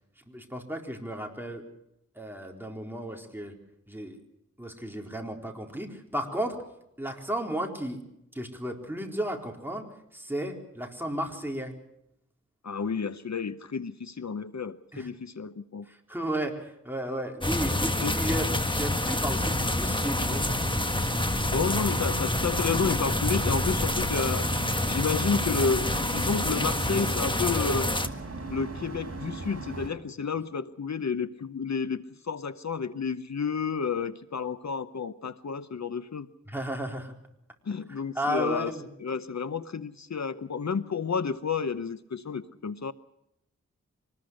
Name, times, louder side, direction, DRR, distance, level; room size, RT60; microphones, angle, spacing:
voice 1, 0.3-1.6 2.2-3.5 3.9-4.2 4.6-6.6 7.0-8.0 8.3-9.8 10.1-11.7 14.9-15.1 15.9-20.7 36.5-37.1 38.2-38.8, right 1 dB, 5° right, 2 dB, 4.3 m, -33 dB
voice 2, 12.6-15.9 18.0-18.2 21.5-24.5 24.8-27.9 28.5-36.3 37.7-38.7 39.0-42.9, left 5 dB, 70° left, 13 dB, 0.9 m, -31 dB
sound 1, 17.4-28.1, left 1 dB, 15° left, 1.5 m, -27 dB
sound 2, 19.3-29.9, right 2 dB, 55° right, 4.0 m, -38 dB
24.5 x 20.0 x 6.4 m, 0.79 s
wide cardioid pair, 65°, 29 cm